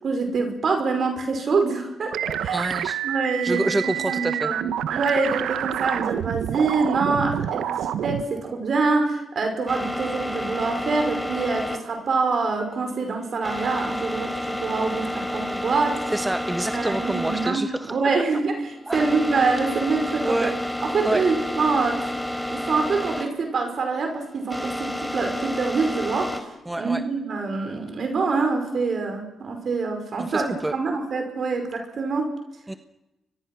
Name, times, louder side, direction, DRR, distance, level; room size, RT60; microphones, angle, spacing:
voice 1, 0.0-2.7 3.0-16.0 16.7-20.5 20.8-22.1 22.5-26.4 26.8-32.3, right 4 dB, 60° right, 5 dB, 5.4 m, -25 dB
sound 1, 2.1-8.2, right 10 dB, 85° right, 1.0 m, -28 dB
voice 2, 2.5-3.0 3.4-4.5 16.1-18.0 18.9-19.0 20.2-20.5 21.0-21.2 26.7-27.0 30.2-30.8 32.7-32.8, right 1 dB, 15° right, 9 dB, 1.3 m, -27 dB
sound 2, 9.7-26.4, left 1 dB, ahead, 3.9 m, -30 dB
29.5 x 23.5 x 6.2 m, 0.98 s
supercardioid pair, 55°, 0 cm